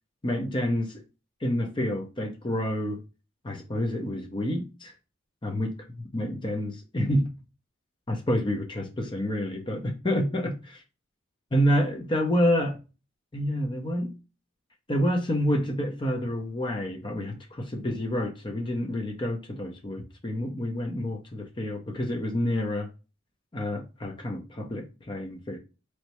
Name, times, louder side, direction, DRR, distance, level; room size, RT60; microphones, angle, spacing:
voice 1, 0.2-0.9 1.4-3.0 3.4-4.9 5.4-5.7 6.1-7.3 8.1-10.5 11.5-12.8 13.3-14.1 14.9-22.9 23.5-25.6, equal, 25° left, 0.7 m, -28 dB
4.0 x 3.2 x 3.0 m
head